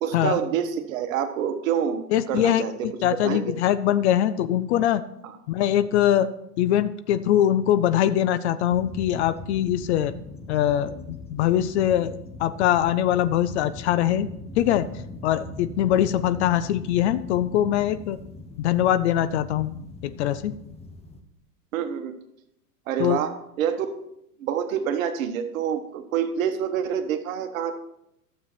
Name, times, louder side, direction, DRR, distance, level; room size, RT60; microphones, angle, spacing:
voice 1, 0.0-2.9 3.2-3.5 5.2-5.4 21.7-22.1 22.9-23.3 23.6-23.9 24.4-27.8, right 8 dB, 55° right, 8 dB, 1.3 m, -27 dB
voice 2, 2.1-5.0 5.5-6.3 6.6-10.1 10.5-14.3 14.6-14.9 15.2-18.2 18.6-19.7 20.0-20.6 23.0-23.2, left 11 dB, 45° left, 14 dB, 0.6 m, -22 dB
sound 1, 8.7-21.2, left 3 dB, 15° left, 0.8 m, -41 dB
12.0 x 7.3 x 4.5 m, 0.79 s
figure-of-eight pair, 95°, 48 cm